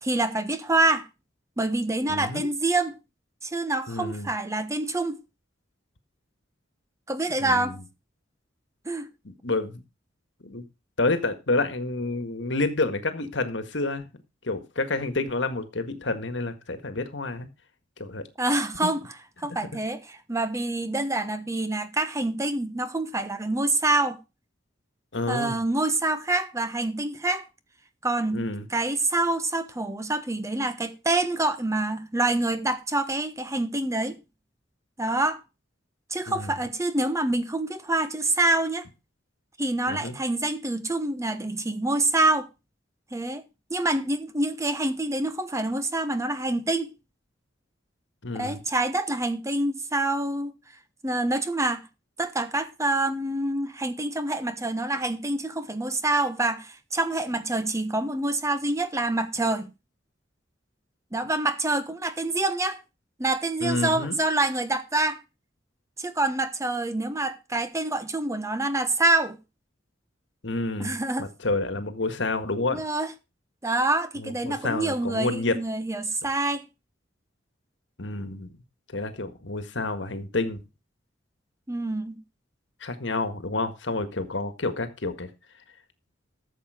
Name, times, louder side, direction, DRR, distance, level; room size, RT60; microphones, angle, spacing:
voice 1, 0.0-1.1 1.6-3.0 3.4-5.2 7.1-7.8 8.8-9.1 18.4-19.0 19.4-24.2 25.3-27.5 28.0-34.2 35.0-35.4 36.1-38.9 39.6-42.5 43.1-43.4 43.7-46.9 48.4-50.5 51.0-51.8 52.2-59.7 61.1-62.8 63.2-65.2 66.0-69.4 70.8-71.3 72.7-73.1 73.6-76.6 81.7-82.2, right 2 dB, 15° right, 1.1 m, -26 dB
voice 2, 2.1-2.5 3.9-4.3 7.4-7.8 9.2-9.8 10.4-10.6 11.0-14.1 14.4-17.5 18.0-18.2 25.1-25.6 28.3-28.7 36.3-36.5 39.9-40.2 48.2-48.6 63.6-64.2 70.4-72.8 74.2-75.6 78.0-78.5 78.9-80.6 82.8-85.3, left 2 dB, 70° left, 1.7 m, -29 dB
13.5 x 7.2 x 4.9 m
head